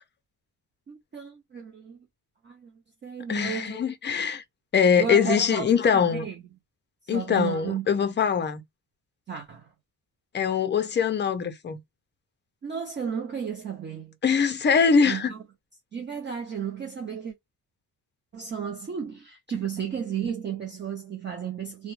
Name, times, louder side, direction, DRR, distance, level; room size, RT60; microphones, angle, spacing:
voice 1, 0.9-2.0 2.4-3.8 5.0-6.4 7.1-7.9 9.3-9.7 12.6-14.1 15.1-15.4 15.9-17.3 18.3-21.9, right 7 dB, 30° right, 0.4 m, -33 dB
voice 2, 3.3-4.4 4.7-6.3 7.1-8.6 10.3-11.8 14.2-15.3, left 6 dB, 30° left, 0.4 m, -23 dB
2.2 x 2.1 x 3.0 m
cardioid pair, 140°, 39 cm